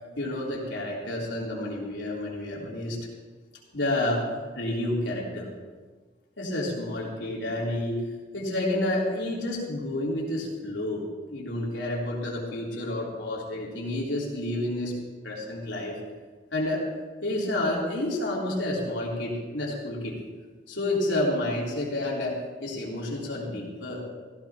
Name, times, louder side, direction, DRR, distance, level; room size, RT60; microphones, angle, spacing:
voice 1, 0.2-3.0 3.7-4.2 4.6-5.5 6.4-8.1 8.3-15.0 15.2-16.0 16.5-16.9 17.2-20.2 20.7-24.1, left 1 dB, 75° left, -4 dB, 3.5 m, -30 dB
17.5 x 15.0 x 3.0 m, 1.4 s
head